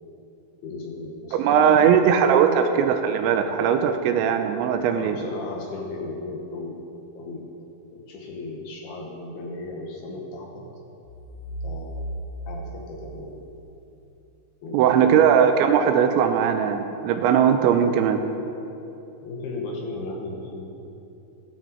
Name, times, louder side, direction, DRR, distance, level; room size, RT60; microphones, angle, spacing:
voice 1, 0.6-2.6 4.9-6.8 7.1-7.5 7.9-10.7 11.6-12.1 12.5-13.4 14.6-15.3 19.2-20.7, left 2 dB, 70° left, -1 dB, 2.8 m, -36 dB
voice 2, 1.3-5.2 14.7-18.2, right 8 dB, 85° right, 7 dB, 2.8 m, -19 dB
sound 1, 11.1-13.9, right 1 dB, 85° left, 3.2 m, -36 dB
15.0 x 12.5 x 4.5 m, 2.9 s
omnidirectional pair, 5.5 m